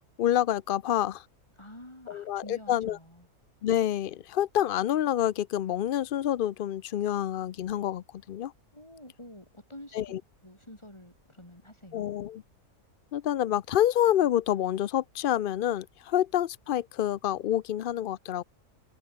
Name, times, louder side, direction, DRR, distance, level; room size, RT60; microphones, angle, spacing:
voice 1, 0.2-1.2 2.1-3.0 3.6-8.5 9.9-10.2 11.9-12.4 13.1-18.4, left 11 dB, 85° left, 0.4 m, -27 dB
voice 2, 1.6-3.3 8.7-10.1 10.4-12.1, left 1 dB, 20° left, 5.6 m, -48 dB
omnidirectional pair, 1.6 m